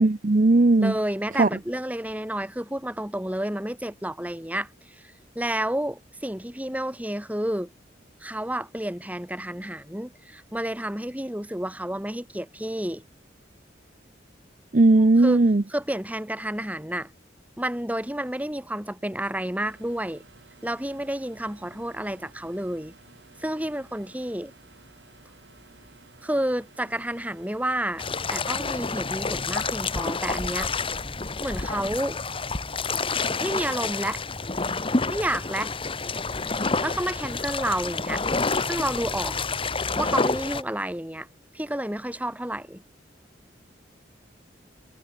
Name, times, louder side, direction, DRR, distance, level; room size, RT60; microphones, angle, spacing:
voice 1, 0.0-0.9 1.4-1.5 14.7-15.6, right 2 dB, 45° right, 0.7 m, -17 dB
voice 2, 0.8-4.7 5.0-7.7 8.2-13.0 15.2-15.4 15.7-17.1 17.6-20.2 20.6-22.9 23.4-24.5 26.2-28.0 28.3-30.7 31.4-32.2 33.4-34.2 35.1-35.7 36.8-38.2 38.6-39.4 39.9-41.3 41.5-42.8, right 1 dB, 10° right, 3.1 m, -30 dB
sound 1, 19.6-31.1, right 2 dB, 70° right, 7.8 m, -54 dB
sound 2, 28.0-40.6, left 4 dB, 30° left, 1.6 m, -28 dB
head